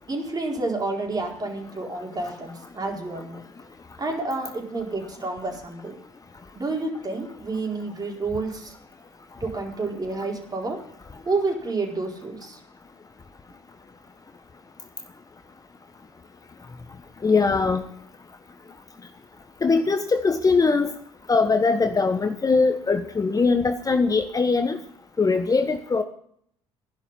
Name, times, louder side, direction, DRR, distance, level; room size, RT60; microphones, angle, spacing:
voice 1, 0.1-3.4 4.0-5.9 6.5-8.7 9.4-10.8 11.2-12.6, right 3 dB, 25° right, 0 dB, 4.5 m, -29 dB
voice 2, 17.2-17.8 19.6-20.9 21.3-24.8 25.2-26.0, left 4 dB, 25° left, 7 dB, 1.2 m, -21 dB
15.0 x 11.0 x 5.7 m, 0.67 s
figure-of-eight pair, 55°, 15 cm